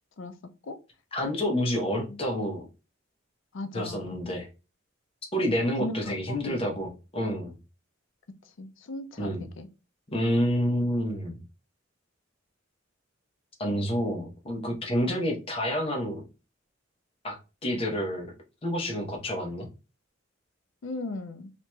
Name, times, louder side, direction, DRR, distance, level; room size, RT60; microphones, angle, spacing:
voice 1, 1.1-2.6 3.7-4.5 5.3-7.6 9.2-9.4 10.1-11.4 13.6-16.2 17.2-18.3 18.6-19.7, equal, 30° left, 1 dB, 0.8 m, -28 dB
voice 2, 1.8-2.2 3.5-4.2 5.8-6.7 8.4-9.7 15.0-15.2 20.8-21.5, left 2 dB, 70° left, 9 dB, 0.5 m, -37 dB
2.9 x 2.8 x 2.2 m, 0.30 s
head